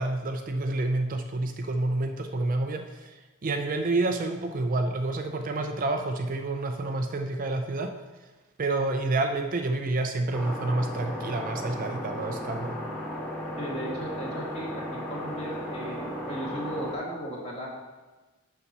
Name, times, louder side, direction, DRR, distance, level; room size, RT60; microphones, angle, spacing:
voice 1, 0.0-7.9 8.6-12.8, right 2 dB, 40° right, 5 dB, 0.5 m, -29 dB
sound 1, 10.3-16.9, equal, 10° left, 2.4 m, -35 dB
voice 2, 13.6-17.7, right 1 dB, 30° left, -4 dB, 2.0 m, -36 dB
6.9 x 5.7 x 5.4 m, 1.2 s
head